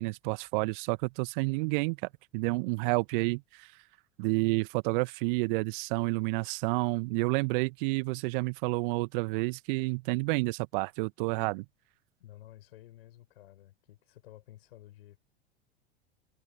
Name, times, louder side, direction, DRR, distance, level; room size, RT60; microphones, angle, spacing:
voice 1, 0.0-2.0 2.3-3.7 4.2-11.6, right 28 dB, 50° right, 1.1 m, -30 dB
voice 2, 12.2-15.2, left 14 dB, 65° left, 6.0 m, -53 dB
figure-of-eight pair, 80°, 32 cm